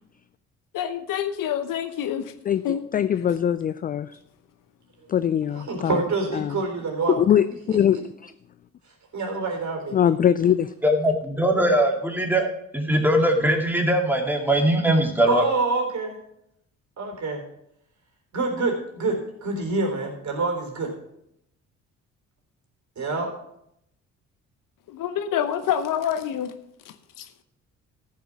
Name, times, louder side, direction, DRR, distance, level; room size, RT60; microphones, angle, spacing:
voice 1, 0.7-2.3 2.6-2.8 24.9-26.5 27.2-27.3, left 9 dB, 55° left, 10 dB, 0.9 m, -27 dB
voice 2, 2.9-4.2 5.1-6.0 6.3-6.6 7.1-8.0 8.2-8.3 9.9-10.7, left 9 dB, 25° left, 14 dB, 0.3 m, -22 dB
voice 3, 5.5-7.1 7.7-7.8 9.1-9.9 15.3-16.2 17.0-17.4 18.3-20.9 23.0-23.3, right 3 dB, 45° right, 2 dB, 3.7 m, -26 dB
voice 4, 10.8-15.4, right 1 dB, 5° right, 2 dB, 2.4 m, -21 dB
14.0 x 6.0 x 5.8 m, 0.78 s
figure-of-eight pair, 45°, 39 cm